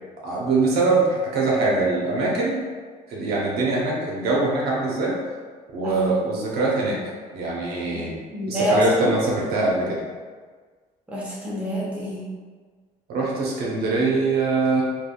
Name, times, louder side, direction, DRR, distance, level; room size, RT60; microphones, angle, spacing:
voice 1, 0.2-2.6 3.1-5.2 5.7-7.0 7.3-8.2 8.5-10.0 13.1-14.8, right 3 dB, 70° right, -4 dB, 0.7 m, -23 dB
voice 2, 5.8-6.1 7.9-9.1 11.1-12.3, equal, 5° right, -7 dB, 0.9 m, -26 dB
3.3 x 2.3 x 2.3 m, 1.5 s
cardioid pair, 110°, 17 cm